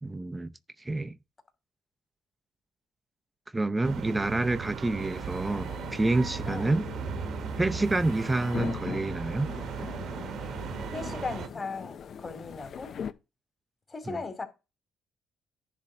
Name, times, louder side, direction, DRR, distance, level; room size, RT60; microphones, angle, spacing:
voice 1, 0.0-0.5 0.8-1.2 3.5-6.9 7.6-9.5 14.1-14.2, right 2 dB, 15° right, 0.6 m, -28 dB
sound 1, 3.8-11.5, right 7 dB, 65° right, 1.2 m, -37 dB
sound 2, 5.0-13.1, left 7 dB, 60° left, 0.7 m, -41 dB
voice 2, 6.5-6.8 10.9-12.9 13.9-14.4, left 4 dB, 30° left, 2.6 m, -37 dB
10.5 x 3.5 x 7.3 m
cardioid pair, 85°, 0 cm